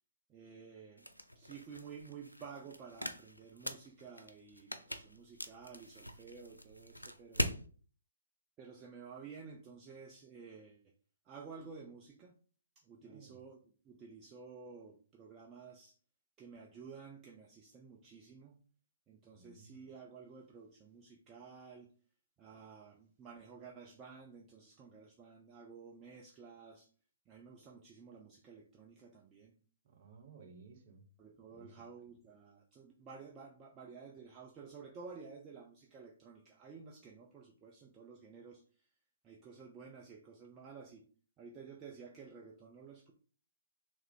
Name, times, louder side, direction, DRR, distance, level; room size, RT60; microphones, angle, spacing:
voice 1, 0.3-1.1 1.4-7.5 8.6-10.8 11.2-12.3 12.8-16.0 16.4-18.6 19.1-21.9 22.4-26.9 27.3-29.5 31.2-38.9 39.2-41.1 41.4-43.1, right 5 dB, 20° right, 0 dB, 0.5 m, -53 dB
sound 1, 1.0-7.6, equal, 90° left, 0.5 m, -42 dB
voice 2, 13.0-13.4 19.3-19.8 29.8-31.1 31.5-31.8, right 5 dB, 40° right, 1 dB, 1.2 m, -57 dB
3.3 x 3.2 x 3.7 m, 0.42 s
figure-of-eight pair, 125°, 0 cm